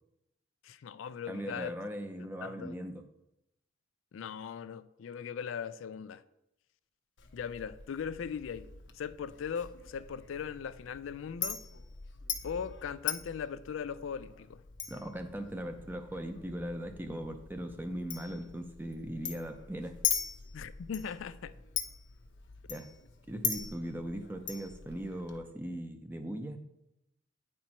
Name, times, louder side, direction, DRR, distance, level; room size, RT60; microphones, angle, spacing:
voice 1, 0.6-1.7 2.4-2.7 4.1-6.2 7.3-8.6 8.9-11.6 12.4-14.6 20.5-21.5, left 7 dB, 85° left, 0.4 m, -39 dB
voice 2, 1.3-3.0 14.9-20.0 22.7-22.9 23.3-26.6, equal, 10° right, 0.5 m, -39 dB
Chink clink, 7.2-25.4, left 8 dB, 70° left, 0.7 m, -41 dB
9.4 x 4.4 x 4.4 m
head